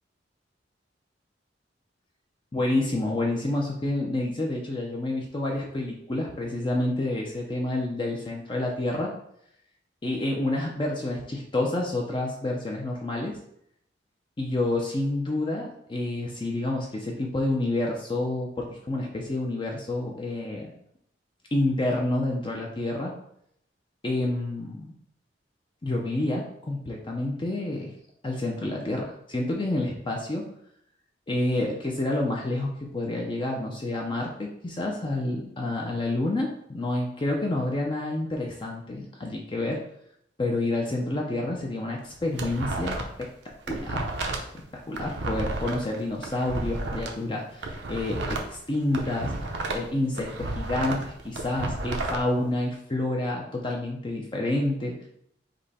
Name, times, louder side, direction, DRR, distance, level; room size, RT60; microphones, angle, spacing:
voice 1, 2.5-9.1 10.0-13.4 14.4-20.7 21.5-23.1 24.0-24.9 25.8-27.9 28.2-30.4 31.3-39.8 40.4-43.3 43.7-44.1 44.9-49.3 49.7-55.1, left 2 dB, 25° left, -1 dB, 0.5 m, -29 dB
sound 1, 42.0-43.2 43.5-47.1 47.5-49.9 50.2-52.2, right 2 dB, 65° right, 0.7 m, -32 dB
5.2 x 2.2 x 4.1 m, 0.72 s
head